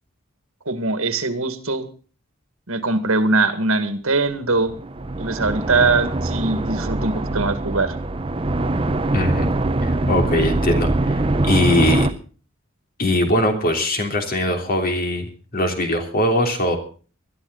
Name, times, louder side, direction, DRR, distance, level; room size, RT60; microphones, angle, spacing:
voice 1, 0.7-1.9 2.7-4.7 5.2-8.0, right 3 dB, 80° right, 10 dB, 2.0 m, -21 dB
sound 1, 4.6-12.1, right 2 dB, 25° right, 0.8 m, -23 dB
voice 2, 9.1-9.5 9.8-12.1 13.0-16.8, left 1 dB, 45° left, 5 dB, 3.2 m, -21 dB
20.5 x 12.5 x 4.0 m, 0.39 s
head